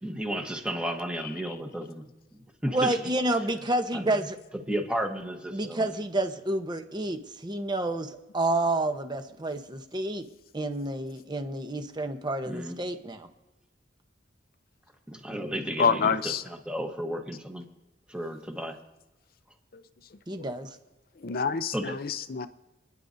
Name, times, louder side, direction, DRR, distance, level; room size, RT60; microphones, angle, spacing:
voice 1, 0.0-2.0 2.3-3.1 3.9-4.2 4.7-5.9 12.4-12.8 15.1-17.6 18.1-18.8 21.7-22.0, right 1 dB, 5° right, 1.2 m, -33 dB
voice 2, 2.7-4.4 5.5-10.2 10.5-13.3 20.3-20.7, right 2 dB, 25° right, 0.9 m, -29 dB
voice 3, 15.8-16.4 21.2-22.5, left 5 dB, 55° left, 0.6 m, -26 dB
29.0 x 10.0 x 2.7 m
head